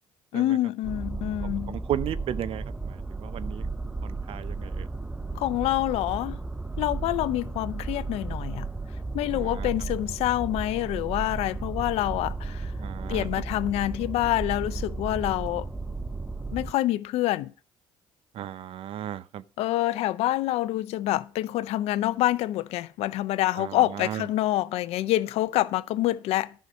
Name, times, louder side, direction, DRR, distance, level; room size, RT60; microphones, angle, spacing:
voice 1, 0.3-1.8 5.4-6.4 6.8-8.7 9.1-12.7 13.1-15.7 16.5-17.5 19.6-26.5, left 15 dB, 70° left, 0.6 m, -27 dB
sound 1, 0.8-16.7, right 3 dB, 10° right, 0.6 m, -34 dB
voice 2, 1.7-3.7 4.0-4.9 9.3-9.7 12.8-13.3 18.3-19.4 23.6-24.3, right 11 dB, 60° right, 0.7 m, -35 dB
11.0 x 5.7 x 6.5 m
supercardioid pair, 70°, 11 cm